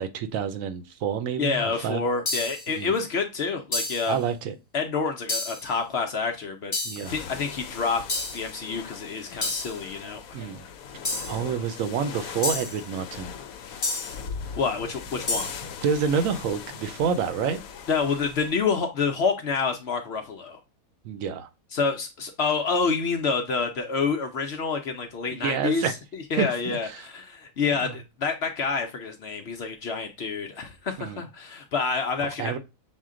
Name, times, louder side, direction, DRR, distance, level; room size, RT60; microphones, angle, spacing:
voice 1, 0.0-2.0 2.8-2.9 4.1-4.5 6.8-7.1 10.3-10.7 11.3-13.3 15.8-17.6 21.0-21.5 25.3-25.9 26.4-27.1 27.8-28.0 31.0-31.2 32.2-32.6, right 7 dB, 70° right, 0.9 m, -28 dB
voice 2, 1.4-4.2 4.7-6.7 7.1-10.4 13.6-13.8 14.6-15.5 17.9-20.6 21.7-32.5, left 5 dB, 60° left, 0.8 m, -28 dB
sound 1, 2.3-2.7 3.7-4.1 5.3-5.7 6.7-7.1 8.1-8.5 9.4-9.8 11.0-11.4 12.4-12.8 13.8-14.2 15.3-15.6, left 3 dB, 25° left, 1.0 m, -29 dB
sound 2, 7.0-18.6, left 6 dB, 80° left, 1.0 m, -40 dB
6.3 x 2.1 x 3.6 m
omnidirectional pair, 1.5 m